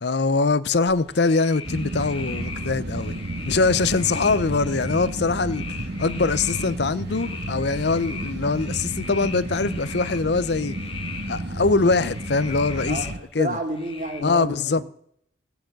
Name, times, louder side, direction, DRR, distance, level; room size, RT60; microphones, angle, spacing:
voice 1, 0.0-3.1 3.5-5.7 6.0-10.8 11.3-13.0 13.3-13.6 14.2-14.8, left 3 dB, 65° left, 0.7 m, -23 dB
sound 1, 0.9-14.2, left 5 dB, 30° left, 1.2 m, -39 dB
sound 2, 1.6-13.2, right 1 dB, 60° right, 1.4 m, -32 dB
voice 2, 12.9-14.9, right 1 dB, 40° right, 2.6 m, -30 dB
18.0 x 7.1 x 7.7 m
head